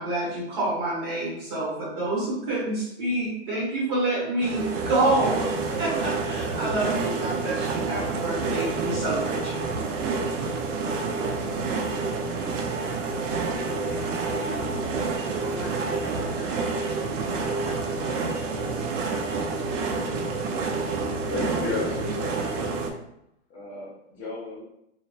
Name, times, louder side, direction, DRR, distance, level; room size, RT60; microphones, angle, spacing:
voice 1, 0.0-9.6, right 2 dB, 30° right, -6 dB, 0.7 m, -27 dB
sound 1, 4.4-22.9, right 4 dB, 90° right, 0.5 m, -28 dB
voice 2, 13.2-19.1 19.5-20.1, left 2 dB, 70° left, -4 dB, 0.8 m, -43 dB
voice 3, 21.1-22.9 23.5-24.6, left 2 dB, 30° left, -6 dB, 0.6 m, -33 dB
2.4 x 2.1 x 2.4 m, 0.80 s
hypercardioid pair, 160°, 36 cm